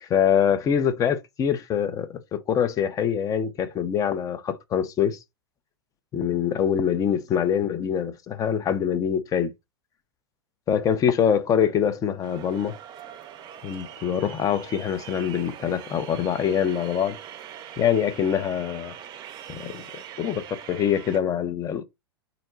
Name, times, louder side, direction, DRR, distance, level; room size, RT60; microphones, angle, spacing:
voice 1, 0.0-5.2 6.1-9.5 10.7-12.7 13.6-17.2 17.8-18.9 19.5-21.8, left 8 dB, 25° left, 0.6 m, -24 dB
sound 1, 12.2-21.2, right 10 dB, 35° right, 0.6 m, -42 dB
4.0 x 2.2 x 3.9 m
figure-of-eight pair, 95°, 13 cm